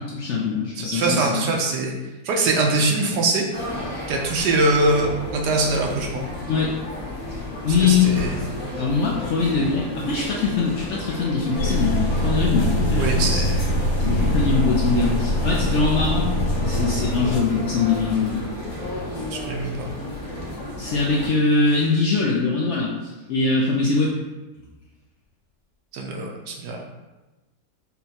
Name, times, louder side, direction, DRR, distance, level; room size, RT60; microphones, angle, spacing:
voice 1, 0.1-1.5 6.4-6.7 7.6-8.1 8.8-12.0 12.2-13.4 14.0-16.3 16.6-18.4 20.8-24.1, left 4 dB, 70° left, -3 dB, 0.7 m, -22 dB
voice 2, 0.8-2.0 2.2-3.4 4.1-6.3 7.8-8.3 13.0-13.6 19.3-19.9 25.9-26.8, right 2 dB, 85° right, 0 dB, 1.2 m, -23 dB
sound 1, 3.5-21.3, left 1 dB, 85° left, 1.4 m, -33 dB
sound 2, 11.5-17.4, equal, 45° left, 1.0 m, -23 dB
5.4 x 2.2 x 2.8 m, 1.1 s
omnidirectional pair, 1.7 m